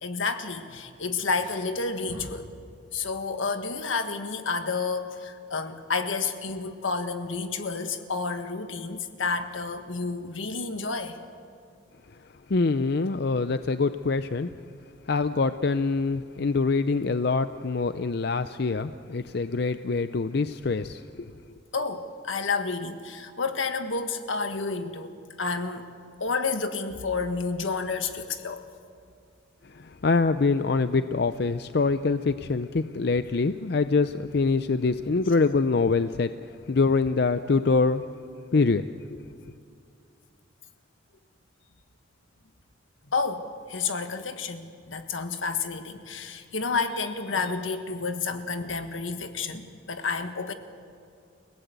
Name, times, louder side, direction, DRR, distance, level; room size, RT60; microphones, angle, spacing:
voice 1, 0.0-2.5 2.9-11.2 21.7-25.9 26.2-28.7 43.1-50.5, left 4 dB, 85° left, 7 dB, 1.6 m, -30 dB
voice 2, 12.5-14.5 15.1-21.3 29.7-36.3 36.7-38.0 38.5-38.9, left 4 dB, 55° left, 11 dB, 0.5 m, -25 dB
29.5 x 17.5 x 8.2 m, 2.3 s
head